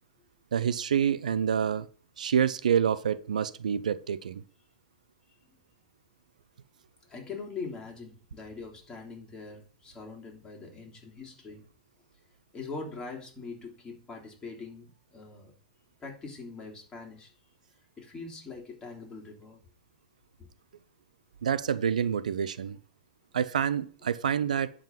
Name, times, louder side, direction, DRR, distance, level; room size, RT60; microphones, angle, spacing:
voice 1, 0.5-1.9 2.2-4.4 21.4-22.8 23.3-24.7, right 8 dB, 85° right, 0.6 m, -27 dB
voice 2, 5.3-5.6 7.1-11.7 12.5-15.5 16.0-17.3 18.0-19.6 20.4-20.5, left 4 dB, 20° left, 3.4 m, -42 dB
10.5 x 3.9 x 7.3 m
hypercardioid pair, 105°, 4 cm